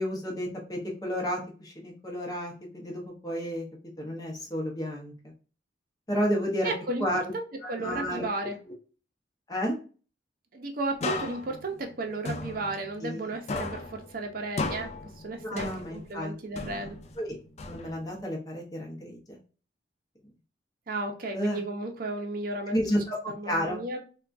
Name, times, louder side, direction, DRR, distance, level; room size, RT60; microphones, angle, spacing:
voice 1, 0.0-3.7 4.0-5.1 6.1-6.7 7.0-7.2 7.6-8.2 9.5-9.8 13.0-13.3 15.4-16.6 17.2-17.4 17.6-19.4 21.3-21.6 22.7-23.8, equal, 20° left, -1 dB, 0.7 m, -31 dB
voice 2, 6.6-7.1 7.3-8.6 10.5-14.9 15.2-17.0 20.9-22.8 23.3-24.0, right 2 dB, 50° right, 3 dB, 0.6 m, -34 dB
sound 1, 11.0-13.2 13.5-16.2 16.6-18.2, left 3 dB, 40° left, 0.4 m, -36 dB
3.5 x 2.2 x 2.5 m, 0.37 s
head